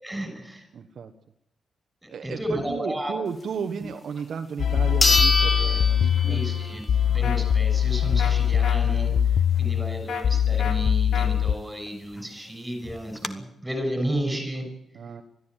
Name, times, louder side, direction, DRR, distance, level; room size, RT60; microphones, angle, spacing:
voice 1, 0.0-0.7 2.0-3.1 6.2-14.7, right 1 dB, 5° right, 5 dB, 6.3 m, -32 dB
voice 2, 0.7-1.1 2.1-6.4 14.9-15.2, right 6 dB, 50° right, 6 dB, 1.3 m, -34 dB
sound 1, 4.2-4.3 5.0-6.8 7.2-7.3 11.9-12.0 12.2-12.3 12.8-13.3, left 3 dB, 20° left, 1.3 m, -24 dB
sound 2, 4.6-11.5, left 9 dB, 55° left, 0.7 m, -22 dB
sound 3, 7.2-7.4 8.2-8.3 8.6-8.8 10.1-10.2 10.6-10.8 11.1-11.3, left 6 dB, 80° left, 3.5 m, -31 dB
21.5 x 14.0 x 9.2 m, 0.79 s
wide cardioid pair, 180°, 0 cm